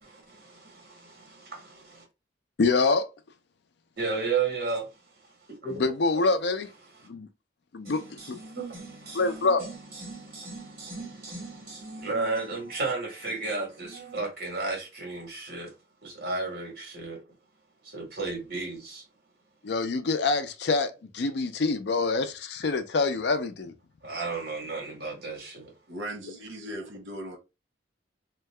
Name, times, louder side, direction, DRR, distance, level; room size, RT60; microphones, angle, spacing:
voice 1, 0.0-2.0 4.0-4.9 5.5-5.8 6.9-7.1 7.8-15.7 16.0-17.2 17.8-19.0 24.0-25.7, right 4 dB, 55° right, 1.4 m, -34 dB
voice 2, 2.6-3.1 5.8-6.7 7.1-7.3 7.7-8.4 9.1-9.6 19.6-23.7, left 3 dB, 60° left, 0.4 m, -26 dB
voice 3, 25.9-27.4, right 1 dB, 85° right, 0.7 m, -38 dB
2.7 x 2.2 x 3.2 m
head